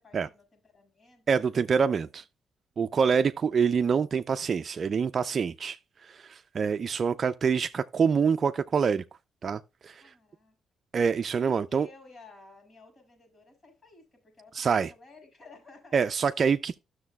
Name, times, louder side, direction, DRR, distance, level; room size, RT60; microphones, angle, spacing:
voice 1, 0.0-1.4 1.7-2.1 10.0-10.5 11.4-16.0, left 3 dB, 45° left, 5.3 m, -54 dB
voice 2, 1.3-2.2 2.8-5.8 6.1-9.0 9.4-10.0 10.9-11.9 14.5-14.9 15.9-16.8, right 6 dB, 50° right, 0.3 m, -26 dB
12.5 x 6.4 x 2.2 m
cardioid pair, 70°, 0 cm